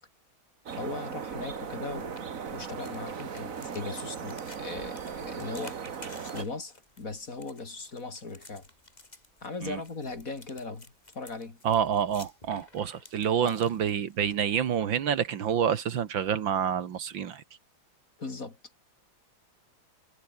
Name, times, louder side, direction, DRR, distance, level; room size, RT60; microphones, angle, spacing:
sound 1, 0.7-6.5, right 6 dB, 45° right, 1.8 m, -38 dB
voice 1, 0.8-2.2 2.5-5.8 6.3-8.7 9.4-10.9 11.1-11.6 13.4-13.6 18.2-18.6, left 3 dB, 40° left, 3.5 m, -38 dB
sound 2, 2.0-14.4, left 2 dB, 20° left, 3.5 m, -53 dB
voice 2, 11.6-17.4, right 8 dB, 70° right, 2.1 m, -28 dB
omnidirectional pair, 2.2 m